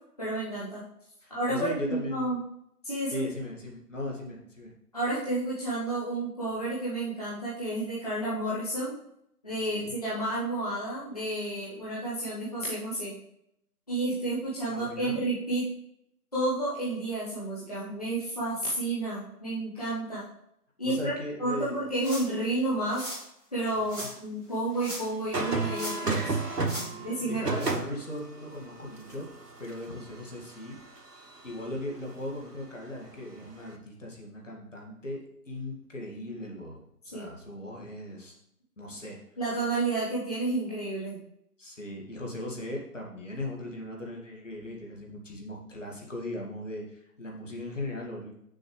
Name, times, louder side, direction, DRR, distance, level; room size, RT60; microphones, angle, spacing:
voice 1, 0.2-0.8 1.3-2.4 2.8-3.3 4.9-8.9 9.4-13.2 13.9-15.7 16.3-20.2 20.8-21.1 21.4-23.1 23.5-26.4 27.0-27.4 37.1-37.3 39.4-41.2, right 2 dB, 25° left, -10 dB, 1.3 m, -31 dB
voice 2, 1.2-2.4 3.1-4.7 9.7-9.9 14.7-15.2 20.8-21.9 23.7-24.1 26.8-29.3 29.6-30.8 31.4-38.4 38.8-39.2 41.6-48.4, left 1 dB, 50° left, -2 dB, 2.2 m, -38 dB
sound 1, 22.0-22.4 22.9-23.2 23.9-24.1 24.7-25.2 25.5-26.2 26.6-26.9 27.6-27.7, equal, 5° right, 2.3 m, -38 dB
sound 2, 25.3-31.7 33.5-33.7, right 3 dB, 80° right, 1.4 m, -33 dB
8.3 x 6.6 x 3.3 m, 0.76 s
figure-of-eight pair, 170°, 47 cm